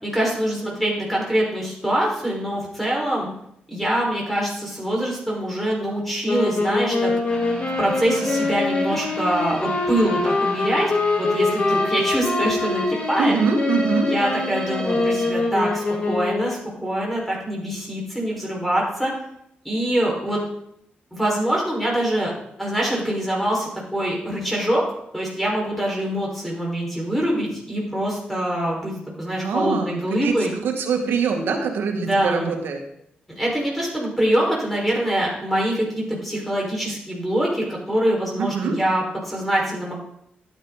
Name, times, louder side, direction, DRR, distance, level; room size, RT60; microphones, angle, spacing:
voice 1, 0.0-3.3 3.7-7.4 7.8-10.9 11.2-13.4 14.0-19.1 19.7-20.4 21.1-22.3 22.6-24.8 25.1-28.9 29.2-30.5 31.9-32.5 33.4-39.9, right 1 dB, 5° left, -3 dB, 5.1 m, -24 dB
sound 1, 6.2-16.6, left 3 dB, 45° left, 3.6 m, -24 dB
sound 2, 7.3-16.3 16.6-16.7 17.2-17.3, equal, 25° left, 3.4 m, -36 dB
voice 2, 13.2-14.1 29.4-29.9 30.2-32.8 38.4-38.8, right 5 dB, 80° right, 3 dB, 2.0 m, -23 dB
12.0 x 9.5 x 4.1 m, 0.74 s
cardioid pair, 60°, 4 cm